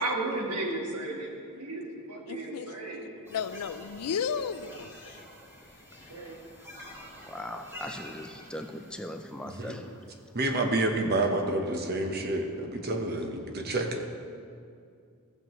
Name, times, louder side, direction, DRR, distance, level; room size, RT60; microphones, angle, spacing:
voice 1, 0.0-3.2 6.1-6.4, right 2 dB, 90° right, -1 dB, 1.6 m, -34 dB
voice 2, 2.3-2.7 3.3-5.2, left 6 dB, 85° left, 13 dB, 0.4 m, -33 dB
sound 1, 3.2-10.2, equal, 10° right, 1.8 m, -48 dB
voice 3, 7.3-10.2, left 1 dB, 5° left, 4 dB, 0.4 m, -40 dB
voice 4, 10.3-13.9, right 2 dB, 45° right, 3 dB, 0.9 m, -28 dB
14.5 x 7.6 x 3.1 m, 2.3 s
head